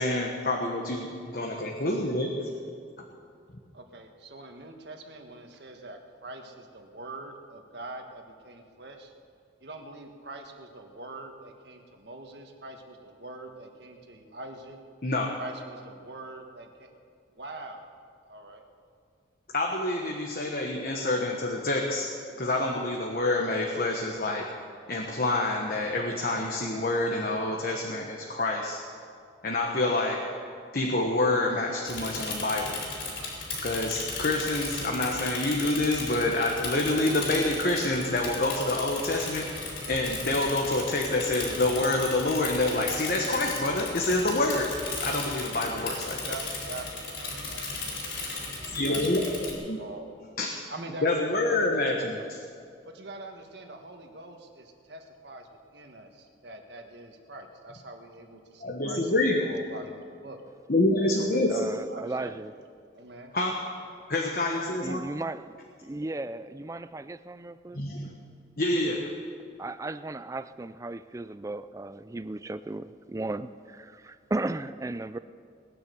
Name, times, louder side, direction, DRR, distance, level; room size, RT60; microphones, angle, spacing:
voice 1, 0.0-2.4 15.0-15.4 19.5-24.4 24.9-28.8 29.4-30.3 30.7-32.8 33.6-39.6 39.9-46.3 48.7-49.8 50.4-50.6 51.0-52.4 58.6-59.5 60.7-61.6 63.3-63.8 64.1-65.0 67.7-68.1 68.6-69.1, left 2 dB, 50° left, 0 dB, 1.3 m, -27 dB
voice 2, 3.7-9.1 9.6-14.8 15.4-16.9 17.3-17.8 18.3-18.6 46.1-50.1 50.7-51.9 52.2-52.3 52.8-60.4 61.1-61.6 61.9-62.3 62.9-63.3, right 2 dB, 60° right, 4 dB, 1.6 m, -44 dB
Bicycle / Mechanisms, 31.8-49.5, left 3 dB, 75° left, 4.2 m, -36 dB
voice 3, 61.5-62.5 64.8-65.5 65.8-67.8 69.6-75.2, right 2 dB, 15° right, 13 dB, 0.4 m, -35 dB
19.0 x 10.0 x 6.9 m, 2.4 s
head